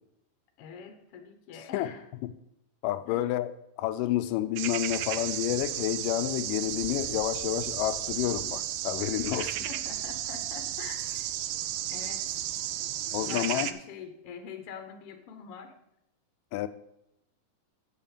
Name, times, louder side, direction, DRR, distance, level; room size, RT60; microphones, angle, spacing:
voice 1, 0.6-2.1 3.0-3.2 9.3-11.3 11.9-12.4 13.2-15.7, left 7 dB, 65° left, 1.5 m, -44 dB
voice 2, 2.8-3.5 3.8-9.5 13.1-13.7 16.5-16.7, left 14 dB, 80° left, 2.2 m, -29 dB
sound 1, 4.6-13.7, right 12 dB, 85° right, 2.3 m, -33 dB
8.0 x 7.5 x 5.1 m
omnidirectional pair, 3.9 m